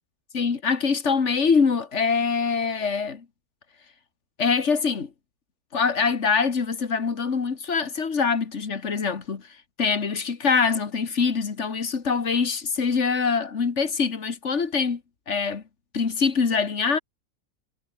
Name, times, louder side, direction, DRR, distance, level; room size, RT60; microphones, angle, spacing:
voice 1, 0.3-3.3 4.4-5.1 5.7-9.5 9.8-15.0 15.3-15.6 15.9-17.0, left 5 dB, 50° left, 1.9 m, -24 dB
omnidirectional pair, 1.6 m